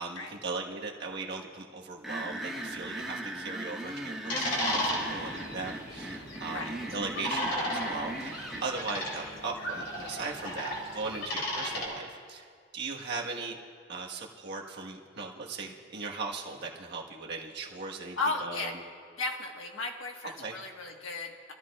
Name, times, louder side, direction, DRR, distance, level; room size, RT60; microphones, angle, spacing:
voice 1, 0.0-12.4 12.7-13.6 13.9-18.7 20.4-20.5, right 3 dB, 55° right, -1 dB, 1.5 m, -38 dB
sound 1, 2.0-8.7, right 1 dB, ahead, 1.1 m, -39 dB
sound 2, 4.3-11.8, left 1 dB, 60° left, 3.1 m, -35 dB
voice 2, 18.2-18.8 19.2-21.5, left 3 dB, 75° left, 2 dB, 1.5 m, -35 dB
25.5 x 14.0 x 2.4 m, 2.2 s
head